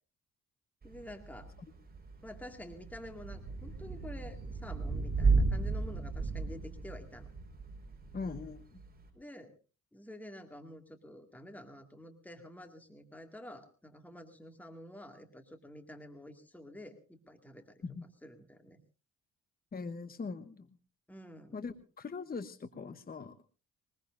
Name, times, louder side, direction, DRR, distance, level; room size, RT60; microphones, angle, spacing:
voice 1, 0.8-1.5 2.2-7.3 9.1-9.5 9.9-17.8 18.2-18.8 21.1-21.6, left 1 dB, 5° left, 6 dB, 2.2 m, -49 dB
Thunder / Rain, 0.8-9.1, right 4 dB, 30° right, 5.1 m, -34 dB
voice 2, 8.1-8.8 17.8-18.0 19.7-20.7 21.5-23.4, left 4 dB, 30° left, 11 dB, 1.1 m, -41 dB
22.0 x 20.5 x 2.6 m, 0.34 s
cardioid pair, 90°, 30 cm